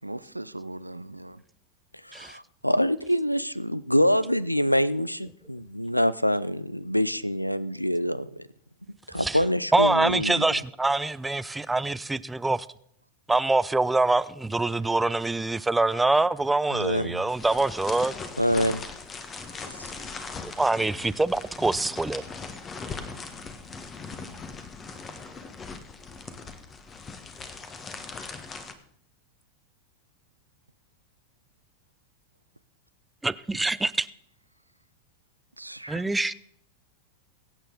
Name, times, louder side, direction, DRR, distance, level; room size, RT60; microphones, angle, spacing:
voice 1, 0.0-1.4 35.6-36.3, right 1 dB, 85° right, 0.4 m, -40 dB
voice 2, 2.0-8.3 9.1-10.5 16.7-17.2 18.4-18.8 19.8-19.9, equal, 90° left, 0.5 m, -25 dB
voice 3, 9.7-12.7 13.3-18.1 20.4-22.2 33.2-34.1 35.9-36.3, right 2 dB, 10° right, 0.4 m, -25 dB
sound 1, 17.3-28.7, left 4 dB, 20° left, 1.4 m, -40 dB
22.5 x 8.9 x 3.9 m
figure-of-eight pair, 90°, 0 cm